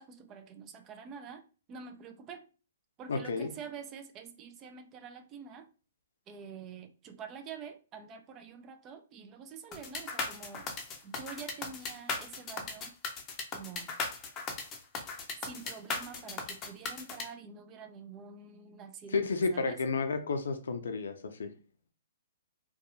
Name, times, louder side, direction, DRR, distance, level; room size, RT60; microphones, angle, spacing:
voice 1, 0.0-1.4 1.7-2.4 3.0-5.7 6.3-10.7 11.0-12.9 13.5-13.9 15.4-19.8, right 6 dB, 25° right, 0.4 m, -47 dB
voice 2, 3.1-3.5 19.1-21.5, left 4 dB, 75° left, 0.4 m, -31 dB
sound 1, 9.7-17.2, left 4 dB, 25° left, 0.6 m, -37 dB
2.6 x 2.3 x 2.6 m
hypercardioid pair, 125°, 0 cm